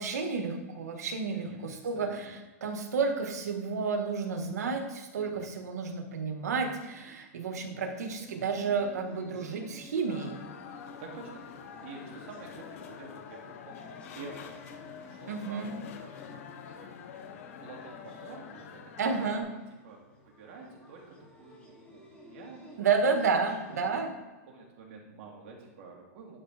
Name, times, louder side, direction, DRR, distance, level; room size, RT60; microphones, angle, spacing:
voice 1, 0.0-10.4 15.3-15.7 19.0-19.4 22.8-24.1, right 5 dB, 90° right, 5 dB, 1.6 m, -31 dB
voice 2, 1.3-2.1 5.2-5.5 11.0-14.6 15.0-16.9 17.6-19.5 19.8-22.9 23.7-24.0 24.5-26.4, right 4 dB, 50° right, -1 dB, 2.6 m, -49 dB
sound 1, 7.7-24.0, left 1 dB, 10° left, 2.7 m, -54 dB
sound 2, 10.1-19.4, left 7 dB, 60° left, 1.0 m, -46 dB
11.0 x 4.4 x 4.9 m, 1.2 s
supercardioid pair, 155°, 9 cm